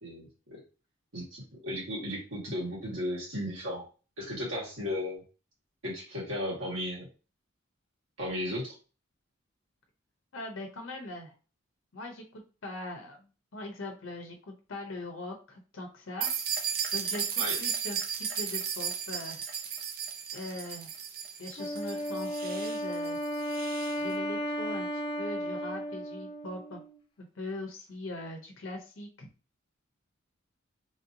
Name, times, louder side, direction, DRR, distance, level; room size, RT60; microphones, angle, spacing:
voice 1, 0.0-0.6 1.1-3.9 4.2-5.2 5.8-7.1 8.2-8.7 17.4-17.6, left 1 dB, 80° right, -5 dB, 1.7 m, -35 dB
voice 2, 10.3-11.3 11.9-13.2 13.5-16.3 16.9-19.4 20.3-20.9 21.4-23.2 24.0-26.8 27.2-29.3, left 2 dB, 80° left, 2 dB, 0.7 m, -41 dB
sound 1, 16.2-24.0, right 7 dB, 45° right, 0.5 m, -35 dB
Wind instrument woodwind instrument, 21.6-27.0, equal, 25° left, 0.3 m, -34 dB
3.1 x 2.7 x 2.6 m, 0.34 s
head